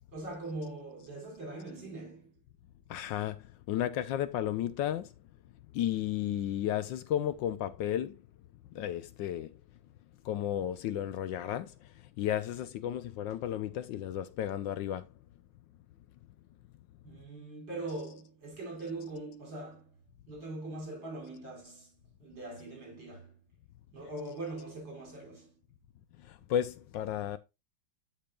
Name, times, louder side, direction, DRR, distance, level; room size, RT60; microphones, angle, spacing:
voice 1, 0.1-2.4 17.0-20.0 20.3-23.4 23.9-25.6, right 2 dB, 70° right, 5.7 m, -42 dB
voice 2, 2.9-5.1 5.7-8.2 8.7-9.6 10.2-15.1 26.2-27.4, left 11 dB, 75° left, 1.2 m, -33 dB
13.0 x 5.3 x 2.3 m
omnidirectional pair, 2.1 m